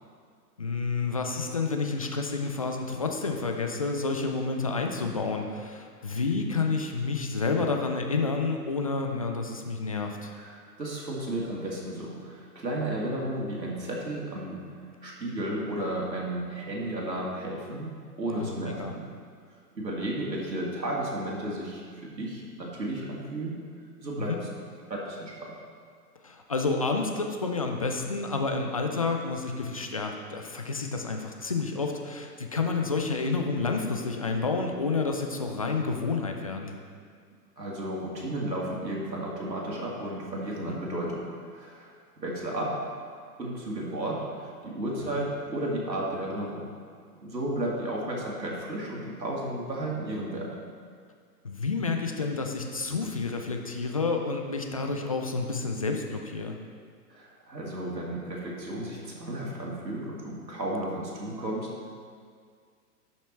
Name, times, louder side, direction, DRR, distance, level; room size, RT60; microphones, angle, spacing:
voice 1, 0.6-10.3 18.4-18.9 24.2-24.4 26.2-36.8 40.6-40.8 45.0-45.2 51.4-56.6, left 4 dB, 25° left, 3 dB, 0.3 m, -29 dB
voice 2, 10.3-19.0 19.7-23.6 24.0-24.5 24.9-25.5 37.6-41.9 42.2-42.9 43.4-46.7 47.2-50.5 57.1-61.7, right 1 dB, 85° right, -3 dB, 2.6 m, -33 dB
12.0 x 5.9 x 4.3 m, 2.1 s
figure-of-eight pair, 120°, 49 cm